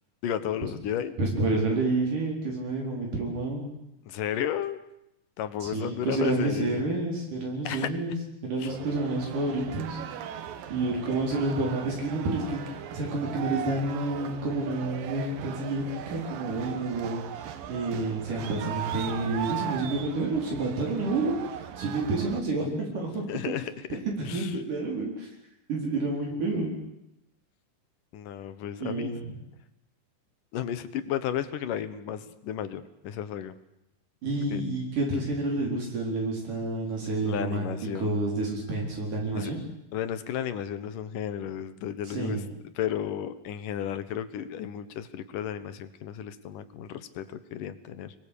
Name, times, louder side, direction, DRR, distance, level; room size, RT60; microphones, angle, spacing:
voice 1, 0.2-1.1 4.1-4.8 5.4-7.0 7.6-7.9 8.6-8.7 23.3-24.6 28.1-29.2 30.5-33.6 34.5-34.6 37.2-38.2 39.3-39.5 39.9-42.4 42.8-48.1, left 9 dB, 75° left, 12 dB, 2.8 m, -33 dB
voice 2, 1.2-3.7 5.6-8.2 8.4-10.0 10.7-23.3 23.9-25.3 25.7-26.7 28.8-29.3 34.2-37.7 38.0-39.6 42.1-42.4, right 2 dB, 70° right, -1 dB, 5.8 m, -29 dB
sound 1, 8.7-22.4, right 10 dB, 90° right, 3.1 m, -38 dB
25.5 x 21.5 x 8.6 m, 0.84 s
omnidirectional pair, 3.9 m